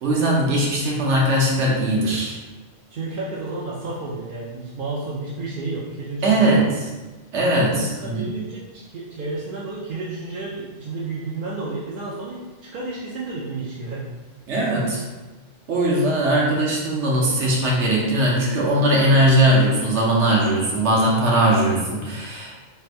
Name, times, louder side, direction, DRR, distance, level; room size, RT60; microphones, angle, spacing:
voice 1, 0.0-2.4 6.2-6.7 7.3-8.3 14.5-15.0 15.7-22.5, right 1 dB, 70° right, -3 dB, 1.2 m, -19 dB
voice 2, 2.9-6.7 7.7-14.0, right 3 dB, 55° right, -6 dB, 0.7 m, -31 dB
3.3 x 2.5 x 4.4 m, 1.2 s
omnidirectional pair, 1.2 m